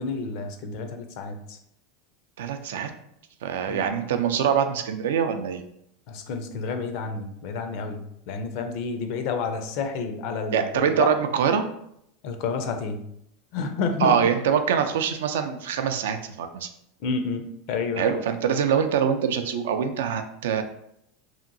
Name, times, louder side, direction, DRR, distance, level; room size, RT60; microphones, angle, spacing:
voice 1, 0.0-1.6 3.7-3.8 6.1-8.0 8.3-11.1 12.2-13.0 13.5-14.1 17.0-18.2, left 4 dB, 60° left, 6 dB, 0.4 m, -30 dB
voice 2, 2.4-2.9 3.4-5.6 10.5-11.7 14.0-16.7 18.0-20.6, right 7 dB, 85° right, 8 dB, 0.3 m, -24 dB
2.8 x 2.6 x 2.5 m, 0.75 s
supercardioid pair, 125°, 0 cm